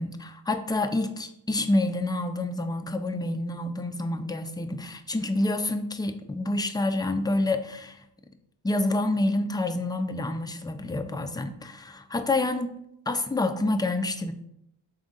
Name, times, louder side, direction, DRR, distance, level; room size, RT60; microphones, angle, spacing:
voice 1, 0.0-8.0 8.6-12.7 13.1-14.3, left 2 dB, 10° left, 7 dB, 0.3 m, -28 dB
3.7 x 3.6 x 3.9 m, 0.77 s
wide cardioid pair, 65°, 45 cm